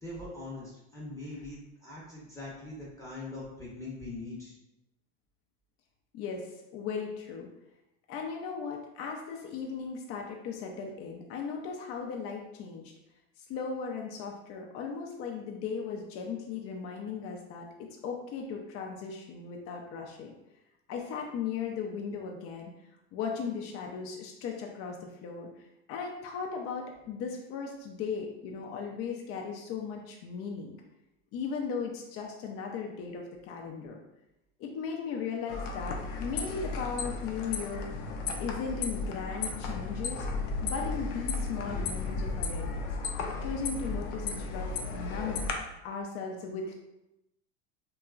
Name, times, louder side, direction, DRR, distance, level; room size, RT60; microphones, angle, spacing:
voice 1, 0.0-4.5, left 2 dB, 10° left, -6 dB, 0.7 m, -42 dB
voice 2, 6.1-7.5 8.1-12.9 13.5-20.3 20.9-22.7 23.1-25.5 25.9-30.8 31.3-34.0 34.6-37.9 38.4-40.3 40.6-42.9 43.4-45.4 45.8-46.8, left 5 dB, 40° left, 1 dB, 0.4 m, -37 dB
sound 1, 35.5-45.5, left 3 dB, 85° left, 0.6 m, -34 dB
2.9 x 2.3 x 2.3 m, 0.90 s
supercardioid pair, 95°, 35 cm